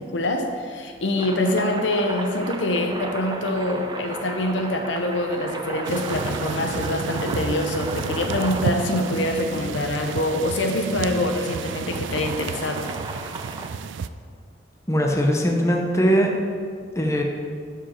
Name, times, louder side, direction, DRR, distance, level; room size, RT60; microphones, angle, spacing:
voice 1, 0.0-12.9, left 1 dB, 80° left, 4 dB, 0.9 m, -25 dB
sound 1, 1.2-13.7, right 2 dB, 25° right, 0.6 m, -36 dB
sound 2, 5.8-14.1, right 6 dB, 75° right, 0.3 m, -32 dB
voice 2, 14.9-16.4 17.0-17.2, equal, 15° left, 1 dB, 0.8 m, -20 dB
12.0 x 5.1 x 4.4 m, 2.1 s
head